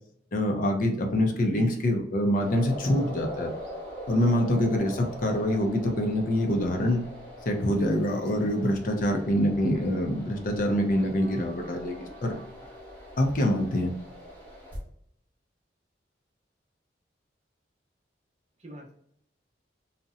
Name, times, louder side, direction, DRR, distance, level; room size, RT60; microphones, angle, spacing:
voice 1, 0.3-3.5 4.1-7.0 7.5-12.3 13.2-13.9, left 1 dB, 50° left, 3 dB, 0.4 m, -25 dB
voice 2, 1.4-1.9 18.6-18.9, right 1 dB, 40° right, 0 dB, 0.6 m, -40 dB
sound 1, 2.3-14.8, equal, 10° left, 0.9 m, -42 dB
2.7 x 2.0 x 2.4 m, 0.72 s
head